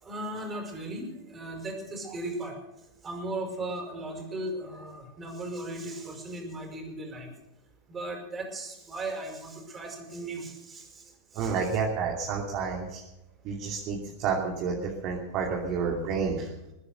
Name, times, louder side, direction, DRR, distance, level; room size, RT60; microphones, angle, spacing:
voice 1, 0.0-2.5 3.0-7.3 7.9-11.6, right 1 dB, 20° right, 3 dB, 5.2 m, -37 dB
voice 2, 11.3-13.0 13.4-16.5, right 5 dB, 45° right, -1 dB, 2.9 m, -30 dB
21.5 x 9.9 x 6.6 m, 0.94 s
hypercardioid pair, 100°, 0 cm